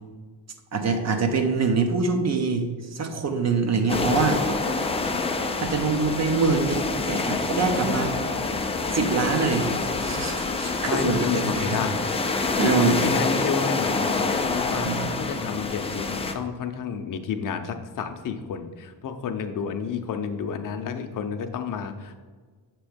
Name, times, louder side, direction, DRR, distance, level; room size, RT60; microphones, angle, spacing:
voice 1, 0.7-4.4 4.7-4.9 5.6-8.2 8.9-9.7 10.0-11.8 12.6-13.0 14.8-15.1, right 4 dB, 40° right, 6 dB, 0.7 m, -24 dB
sound 1, 3.9-16.3, left 3 dB, 15° left, 0.3 m, -27 dB
voice 2, 10.9-12.0 12.6-22.1, left 6 dB, 50° left, 7 dB, 0.6 m, -30 dB
6.9 x 3.0 x 5.0 m, 1.5 s
cardioid pair, 150°, 41 cm